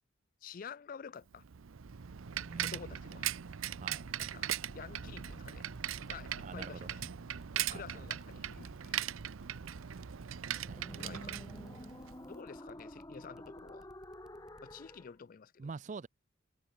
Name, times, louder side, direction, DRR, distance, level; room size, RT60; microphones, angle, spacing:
voice 1, 0.4-1.4 2.6-3.3 4.2-5.7 6.1-7.0 7.5-9.1 11.0-11.4 11.7-11.9 12.3-13.9 14.6-15.7, left 6 dB, 45° left, 0.4 m, -50 dB
Bicycle, 1.3-12.2, right 10 dB, 90° right, 0.6 m, -40 dB
sound 1, 2.0-15.1, left 1 dB, 20° left, 2.5 m, -53 dB
voice 2, 2.4-2.8 3.8-4.0 6.4-6.9 7.7-8.0 10.3-11.2 15.6-16.1, right 4 dB, 35° right, 0.4 m, -46 dB
sound 2, 5.0-14.7, equal, 5° right, 4.3 m, -62 dB
head